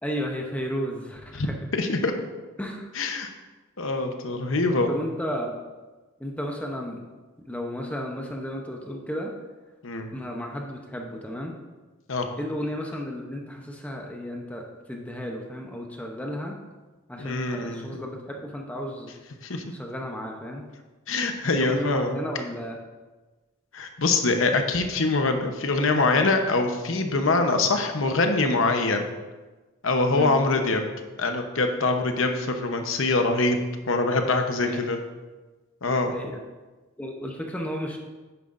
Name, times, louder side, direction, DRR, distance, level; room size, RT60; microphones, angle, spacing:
voice 1, 0.0-1.6 2.6-2.9 4.9-5.6 6.2-7.0 7.5-9.3 10.1-11.6 12.4-16.6 17.1-19.1 19.7-20.7 21.5-22.8 30.1-30.4 34.6-34.8 35.8-36.4 37.0-38.0, equal, 5° left, 1 dB, 0.7 m, -33 dB
voice 2, 1.7-2.1 2.9-3.3 3.8-4.9 9.8-10.1 12.1-12.3 17.2-18.0 19.4-19.6 21.1-22.2 23.7-29.0 29.8-30.8 31.2-33.6 33.9-35.0 35.8-36.1, left 3 dB, 65° left, 5 dB, 0.9 m, -24 dB
10.0 x 9.0 x 2.6 m, 1.3 s
head